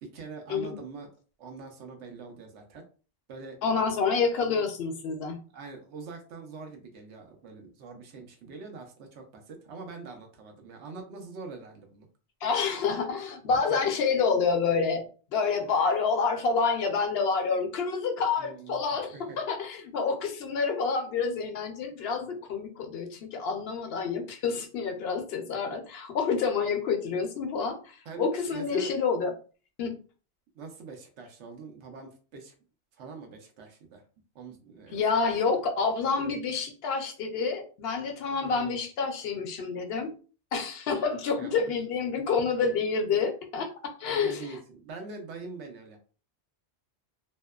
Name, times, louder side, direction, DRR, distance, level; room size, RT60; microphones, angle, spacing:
voice 1, 0.0-1.1 1.4-2.8 3.3-3.6 4.5-4.6 5.5-12.1 13.5-13.8 18.4-19.4 28.0-28.9 30.5-32.5 32.9-34.0 34.3-35.6 38.4-38.8 41.4-41.7 42.6-42.7 44.0-46.0, right 4 dB, 85° right, 4 dB, 0.9 m, -44 dB
voice 2, 3.6-5.4 12.4-29.3 29.8-29.9 34.9-40.1 40.5-44.4, left 5 dB, 65° left, 4 dB, 0.8 m, -28 dB
2.7 x 2.1 x 2.2 m, 0.37 s
omnidirectional pair, 1.1 m